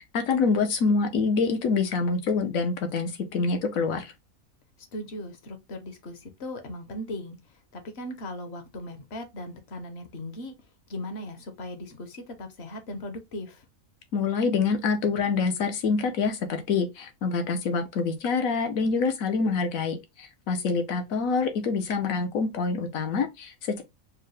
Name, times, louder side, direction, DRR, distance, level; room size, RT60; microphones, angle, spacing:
voice 1, 0.0-4.1 14.1-23.8, left 4 dB, 75° left, 1.2 m, -26 dB
voice 2, 4.9-7.4 7.7-10.5 10.9-13.6, left 1 dB, 55° left, 1.0 m, -38 dB
4.6 x 2.1 x 3.1 m
omnidirectional pair, 1.4 m